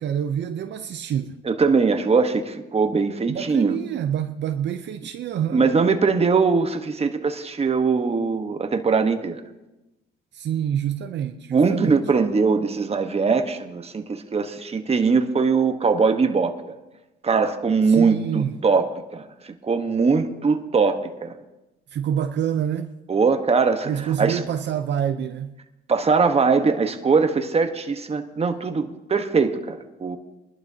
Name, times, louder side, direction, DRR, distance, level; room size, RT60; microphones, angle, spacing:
voice 1, 0.0-1.4 3.3-5.7 10.3-12.0 17.9-18.5 21.9-22.9 23.9-25.5, right 9 dB, 65° right, 0.7 m, -27 dB
voice 2, 1.4-3.8 5.5-9.4 11.5-16.6 17.2-21.4 23.1-23.9 24.2-24.4 25.9-30.2, right 4 dB, 30° right, 1.2 m, -21 dB
22.5 x 12.0 x 2.8 m
cardioid pair, 90°, 20 cm